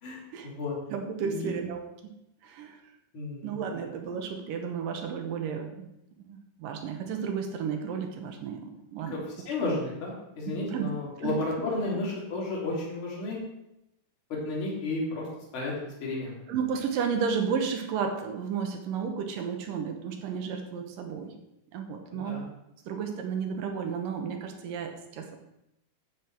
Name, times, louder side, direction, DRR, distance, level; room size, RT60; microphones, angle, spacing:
voice 1, 0.0-0.7 1.2-1.5 3.1-3.8 9.1-9.2 9.4-13.4 14.3-15.3 15.5-15.7 16.0-16.3 22.1-22.4, left 2 dB, 35° left, -4 dB, 3.4 m, -32 dB
voice 2, 0.9-2.1 2.4-2.8 3.4-5.9 6.3-9.2 10.5-10.9 11.2-11.4 16.5-21.3 21.7-22.4 22.9-25.4, right 6 dB, 70° right, 4 dB, 2.5 m, -33 dB
10.5 x 8.2 x 4.6 m, 0.87 s
omnidirectional pair, 4.4 m